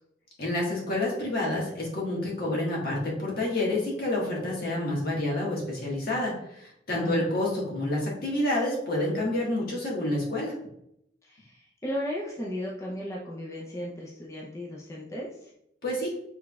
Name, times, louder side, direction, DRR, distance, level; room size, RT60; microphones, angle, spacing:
voice 1, 0.4-10.5 15.8-16.1, left 1 dB, 55° left, -4 dB, 1.5 m, -28 dB
voice 2, 6.9-7.3 11.3-15.5, equal, 15° left, -4 dB, 0.6 m, -35 dB
6.1 x 3.4 x 2.3 m, 0.77 s
head